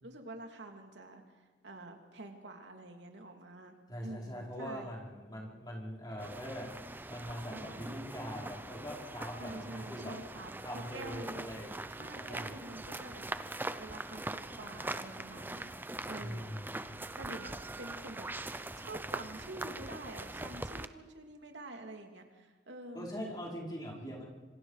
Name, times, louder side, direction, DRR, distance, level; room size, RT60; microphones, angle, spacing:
voice 1, 0.0-3.7 4.0-4.9 7.5-8.0 9.4-11.5 11.9-13.2 13.5-16.5 17.2-18.3 18.8-23.1 24.0-24.2, right 2 dB, 90° right, 3 dB, 2.8 m, -48 dB
voice 2, 3.9-10.1 10.6-11.8 12.2-12.6 16.2-17.0 22.9-24.2, equal, 25° left, -3 dB, 5.0 m, -42 dB
sound 1, 6.2-20.9, right 2 dB, 10° right, 0.6 m, -42 dB
26.5 x 26.0 x 5.0 m, 1.4 s
head